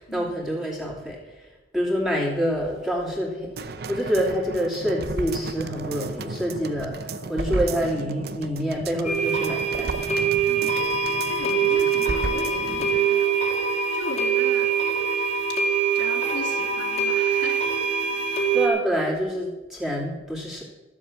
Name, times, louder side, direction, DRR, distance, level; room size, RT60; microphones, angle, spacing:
voice 1, 0.0-10.2 18.5-20.6, equal, ahead, -4 dB, 2.8 m, -27 dB
sound 1, 3.6-13.0 13.3-13.4, right 3 dB, 55° right, 0.7 m, -34 dB
sound 2, 9.0-18.7, right 6 dB, 40° left, 1.8 m, -24 dB
voice 2, 10.5-10.9 11.3-13.3 13.9-14.7 15.5-15.6 15.9-17.6, left 2 dB, 80° left, -1 dB, 2.7 m, -37 dB
13.5 x 7.4 x 7.2 m, 1.1 s
head